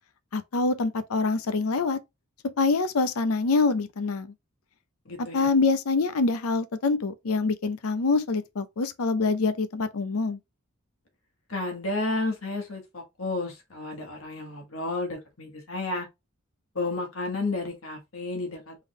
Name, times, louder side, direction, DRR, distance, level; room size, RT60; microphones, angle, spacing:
voice 1, 0.3-2.0 2.6-4.3 5.3-10.4, left 3 dB, 90° left, 0.6 m, -25 dB
voice 2, 5.0-5.5 11.5-16.1 16.7-18.8, left 2 dB, 70° left, 1.4 m, -32 dB
3.8 x 3.5 x 3.1 m
head